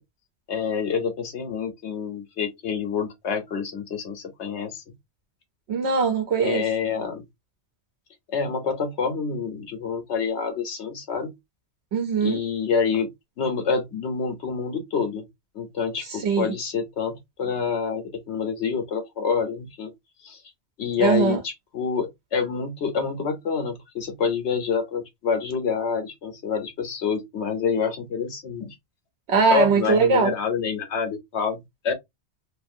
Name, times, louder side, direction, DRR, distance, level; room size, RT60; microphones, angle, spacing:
voice 1, 0.5-4.8 6.4-7.2 8.3-11.3 12.2-13.1 13.4-15.3 15.5-19.9 20.2-20.4 20.8-28.7 29.5-31.9, left 6 dB, 80° left, 1.2 m, -27 dB
voice 2, 5.7-6.6 11.9-12.4 16.0-16.5 21.0-21.4 29.3-30.3, right 5 dB, 75° right, 0.9 m, -21 dB
2.9 x 2.5 x 2.5 m
omnidirectional pair, 1.1 m